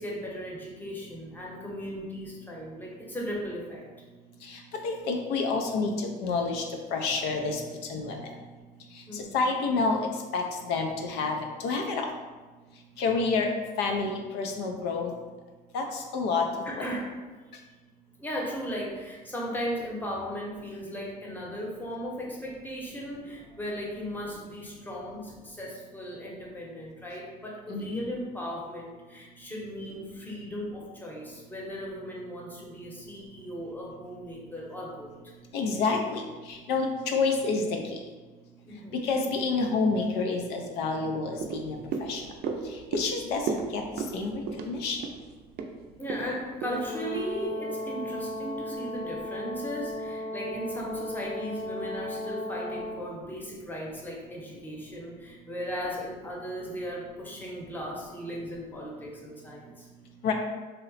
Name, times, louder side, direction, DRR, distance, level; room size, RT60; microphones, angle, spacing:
voice 1, 0.0-3.8 9.1-9.4 16.6-17.2 18.2-35.3 38.6-39.0 46.0-59.9, equal, 10° left, -3 dB, 0.8 m, -37 dB
voice 2, 4.5-6.6 6.9-7.6 7.9-8.2 9.1-10.0 10.3-12.1 13.0-13.5 13.8-15.1 15.7-16.9 27.7-28.0 35.5-37.8 39.0-41.8 42.1-42.2 42.9-45.0 60.2-60.3, left 4 dB, 90° left, 3 dB, 0.4 m, -28 dB
sound 1, 41.4-47.8 48.2-48.3, right 5 dB, 65° right, 0.4 m, -36 dB
Brass instrument, 46.6-53.0, left 1 dB, 60° left, 0.8 m, -36 dB
2.8 x 2.1 x 3.9 m, 1.3 s
cardioid pair, 110°, 17 cm